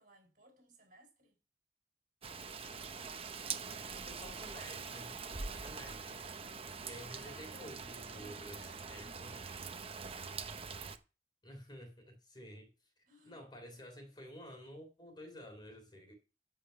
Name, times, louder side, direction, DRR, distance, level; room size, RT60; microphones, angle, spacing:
voice 1, 0.0-1.4 6.7-8.8 13.0-13.4, right 1 dB, 50° right, 4.7 m, -60 dB
Rain, 2.2-11.0, right 5 dB, 35° right, 0.8 m, -44 dB
voice 2, 4.0-6.2 6.8-8.6 8.9-9.4 11.4-12.7 13.2-16.1, equal, 25° left, 3.2 m, -51 dB
13.5 x 5.1 x 5.7 m
head